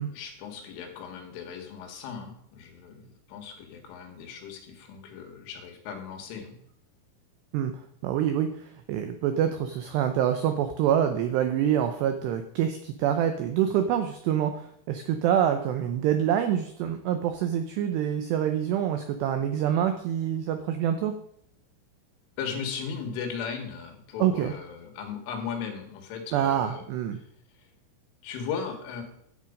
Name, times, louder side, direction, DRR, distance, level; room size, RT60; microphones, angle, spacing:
voice 1, 0.0-6.6 22.4-26.8 27.6-27.7 28.2-29.0, left 6 dB, 75° left, 2 dB, 4.2 m, -37 dB
voice 2, 8.0-21.1 24.2-24.5 26.3-27.2, right 10 dB, 85° right, 7 dB, 2.4 m, -26 dB
12.0 x 8.4 x 5.2 m, 0.70 s
omnidirectional pair, 5.9 m